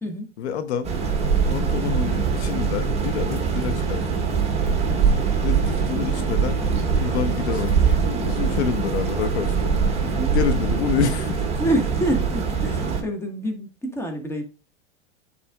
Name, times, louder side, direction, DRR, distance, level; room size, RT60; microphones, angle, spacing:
voice 1, 0.4-0.9 1.5-4.1 5.4-6.6 6.9-9.8 10.3-11.5, left 8 dB, 75° left, 1.0 m, -28 dB
sound 1, 0.8-13.0, right 5 dB, 20° right, 1.6 m, -23 dB
sound 2, 6.4-8.9 9.2-9.7, left 4 dB, 25° left, 2.1 m, -40 dB
voice 2, 10.0-10.4 11.6-14.4, right 1 dB, 10° left, 1.4 m, -27 dB
9.4 x 4.2 x 2.3 m
hypercardioid pair, 115°, 33 cm